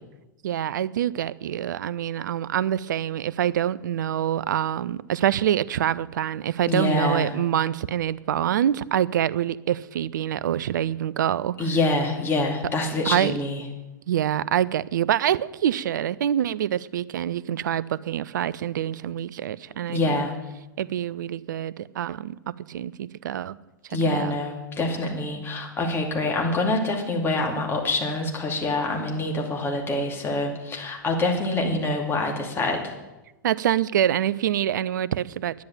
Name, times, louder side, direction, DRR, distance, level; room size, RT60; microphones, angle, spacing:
voice 1, 0.4-11.7 13.1-13.3 14.1-20.3 20.8-22.3 22.7-23.6 24.1-24.3 33.4-35.6, right 10 dB, 65° right, 19 dB, 0.4 m, -25 dB
voice 2, 6.7-7.3 11.6-13.6 19.9-20.3 23.9-32.9, left 2 dB, 20° left, 1 dB, 2.6 m, -25 dB
10.5 x 10.5 x 7.3 m, 1.0 s
figure-of-eight pair, 95°, 11 cm